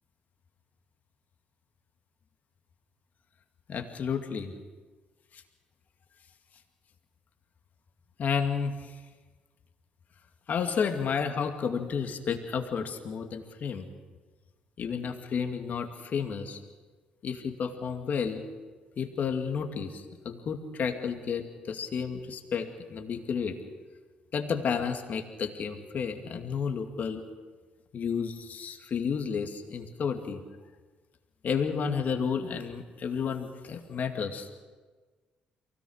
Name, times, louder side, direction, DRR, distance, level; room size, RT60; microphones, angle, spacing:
voice 1, 3.7-4.5 5.3-5.4 8.2-8.8 10.5-13.9 14.8-16.6 17.2-18.4 19.0-23.6 24.3-27.2 27.9-30.4 31.4-34.6, left 6 dB, 55° left, 5 dB, 2.3 m, -31 dB
23.5 x 17.5 x 6.6 m, 1.4 s
supercardioid pair, 60°, 3 cm